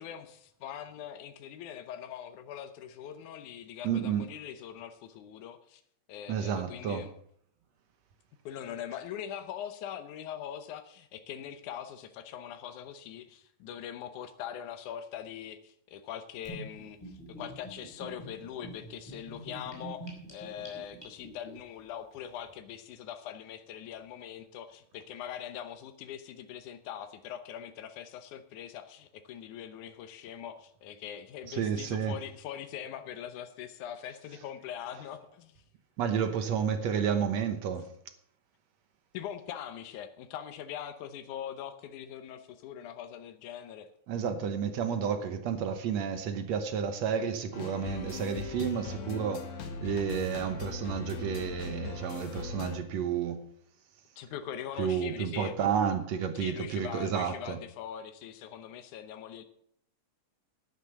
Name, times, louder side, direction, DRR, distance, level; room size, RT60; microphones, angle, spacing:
voice 1, 0.0-5.8 6.1-7.1 8.5-35.6 39.1-43.9 54.2-55.7 56.3-59.4, left 9 dB, 85° left, 2.4 m, -42 dB
voice 2, 3.8-4.3 6.3-7.1 31.5-32.2 36.0-37.9 44.1-53.5 54.8-57.6, right 7 dB, 70° right, 2.1 m, -31 dB
Gurgling / Bathtub (filling or washing), 16.4-21.5, right 1 dB, 10° left, 4.3 m, -45 dB
sound 1, 47.5-52.8, left 3 dB, 65° left, 2.7 m, -39 dB
11.5 x 9.9 x 5.9 m
omnidirectional pair, 3.4 m